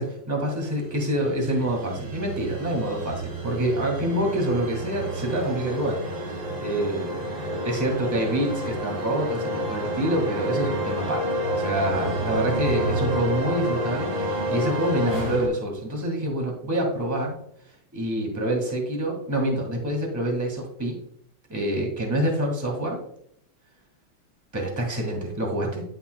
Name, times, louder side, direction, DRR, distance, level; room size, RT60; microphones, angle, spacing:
voice 1, 0.0-6.0 6.3-7.2 7.6-11.2 11.5-17.4 17.9-21.0 21.5-23.0 24.5-25.8, right 1 dB, 10° right, 1 dB, 1.7 m, -26 dB
sound 1, 0.8-15.5, equal, 85° right, 2.8 m, -29 dB
10.5 x 5.6 x 2.3 m, 0.69 s
omnidirectional pair, 2.3 m